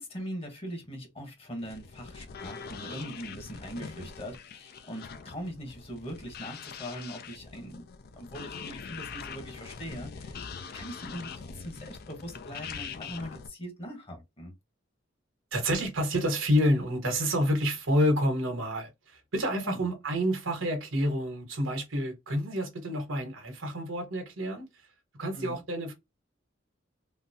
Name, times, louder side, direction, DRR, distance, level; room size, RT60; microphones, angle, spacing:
voice 1, 0.0-14.5 19.6-19.9 25.3-25.6, equal, 30° left, 1.1 m, -41 dB
sound 1, 1.6-13.5, left 6 dB, 50° left, 0.4 m, -43 dB
voice 2, 15.5-24.6 25.2-25.9, equal, 80° right, 1.1 m, -28 dB
3.8 x 2.0 x 2.7 m
head